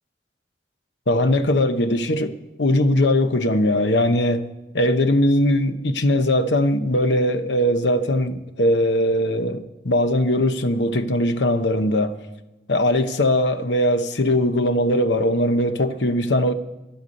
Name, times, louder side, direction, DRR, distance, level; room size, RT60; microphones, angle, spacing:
voice 1, 1.1-2.3 2.6-4.5 4.7-12.2 12.7-16.5, left 1 dB, 85° left, 0.9 m, -20 dB
12.0 x 8.0 x 9.6 m
head